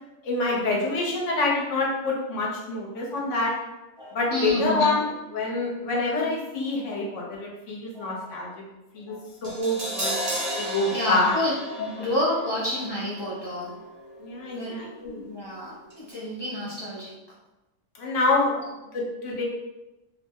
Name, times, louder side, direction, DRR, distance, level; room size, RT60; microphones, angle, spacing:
voice 1, 0.2-3.5 4.1-5.0 5.3-8.6 8.9-9.2 9.4-10.2 10.6-11.4 14.2-15.2 18.0-19.4, left 2 dB, 70° left, -3 dB, 1.1 m, -26 dB
voice 2, 4.0-4.9 6.9-7.0 7.9-8.1 9.1-9.2 10.9-11.5 11.8-13.7 14.5-17.1, left 1 dB, 40° left, -8 dB, 0.4 m, -30 dB
Crash cymbal, 9.4-15.6 15.9-16.0, equal, 40° right, 0.7 m, -35 dB
2.6 x 2.0 x 3.5 m, 1.0 s
omnidirectional pair, 1.4 m